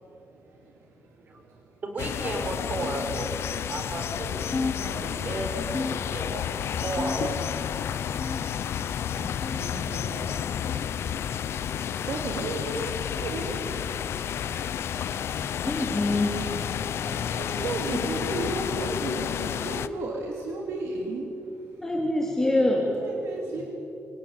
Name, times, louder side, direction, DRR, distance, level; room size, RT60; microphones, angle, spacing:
voice 1, 0.0-1.8 3.5-3.6 4.5-6.1 6.4-6.7 7.8-15.7 16.8-21.8 22.9-23.6, right 2 dB, 90° right, 0 dB, 3.1 m, -37 dB
voice 2, 1.8-4.5 5.2-5.5 5.8-6.4 6.8-7.5, right 2 dB, 40° right, 3 dB, 4.3 m, -33 dB
sound 1, 2.0-19.9, left 9 dB, 70° left, 0.8 m, -31 dB
sound 2, 4.5-5.4 5.7-6.5 7.0-7.6 8.2-8.8 9.4-9.8 10.6-10.9 11.8-12.1 13.1-13.3 14.3-14.5 15.5-15.7 16.7-16.9 17.9-18.0 19.2-19.3, left 3 dB, 25° left, 1.2 m, -35 dB
voice 3, 15.1-16.4 17.0-17.1 21.8-22.9, left 1 dB, 10° left, -1 dB, 2.8 m, -26 dB
25.5 x 18.5 x 8.9 m, 2.8 s
wide cardioid pair, 155°, 5 cm